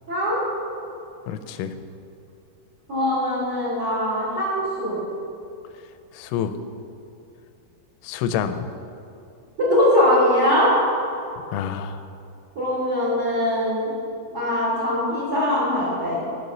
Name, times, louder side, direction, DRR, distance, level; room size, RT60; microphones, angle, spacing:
voice 1, 0.1-0.4 2.9-5.0 9.7-10.7 12.5-13.9 14.3-16.2, left 1 dB, 35° right, -9 dB, 1.1 m, -21 dB
voice 2, 1.3-1.7 6.1-6.6 8.0-8.7 11.5-12.0, left 8 dB, 85° left, 9 dB, 3.1 m, -27 dB
13.5 x 4.5 x 6.6 m, 2.5 s
omnidirectional pair, 5.7 m